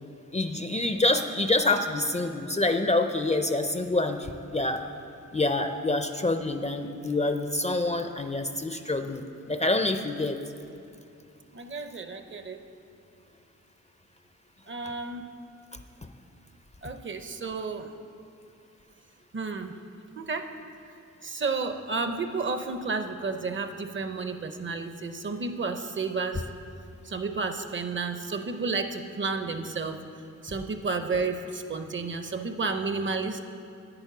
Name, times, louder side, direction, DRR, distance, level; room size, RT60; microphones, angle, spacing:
voice 1, 0.3-4.8 5.3-10.4 16.8-16.9, left 2 dB, 20° left, 6 dB, 0.4 m, -27 dB
voice 2, 11.5-12.6 14.7-15.3 16.8-17.9 19.3-19.7 20.2-20.5 21.2-26.4 27.0-30.0 30.4-33.4, right 4 dB, 40° right, 7 dB, 0.6 m, -31 dB
9.6 x 8.9 x 5.9 m, 2.6 s
wide cardioid pair, 145°, 31 cm